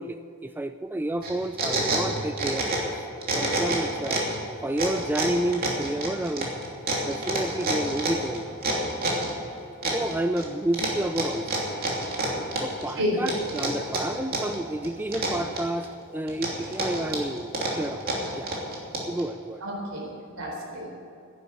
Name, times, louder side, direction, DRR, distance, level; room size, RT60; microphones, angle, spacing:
voice 1, 0.0-3.1 3.4-4.3 4.6-6.5 7.1-8.5 9.8-11.6 12.6-17.5 17.8-18.5 19.1-19.6, right 1 dB, 10° right, 9 dB, 0.3 m, -30 dB
sound 1, 1.2-2.9 3.2-4.4 4.8-9.3 9.8-10.5 10.7-12.8 13.3-14.6 14.8-15.8 16.3-19.2, right 2 dB, 45° right, 2.9 m, -28 dB
voice 2, 19.6-20.9, equal, 80° right, 0 dB, 4.1 m, -30 dB
11.0 x 11.0 x 8.2 m, 2.7 s
head